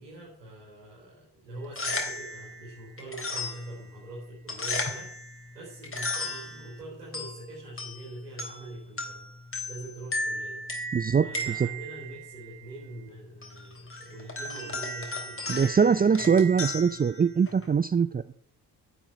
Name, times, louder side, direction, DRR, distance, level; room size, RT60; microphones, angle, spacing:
voice 1, 0.0-5.1 5.5-9.2 9.6-10.6 11.2-16.3, right 2 dB, 85° right, -7 dB, 4.7 m, -44 dB
sound 1, 1.6-17.8, left 1 dB, 25° left, 3.4 m, -36 dB
voice 2, 10.9-11.3 11.6-11.7 15.5-18.4, right 6 dB, 20° right, 15 dB, 0.5 m, -23 dB
10.0 x 8.2 x 8.8 m, 0.63 s
figure-of-eight pair, 40°, 48 cm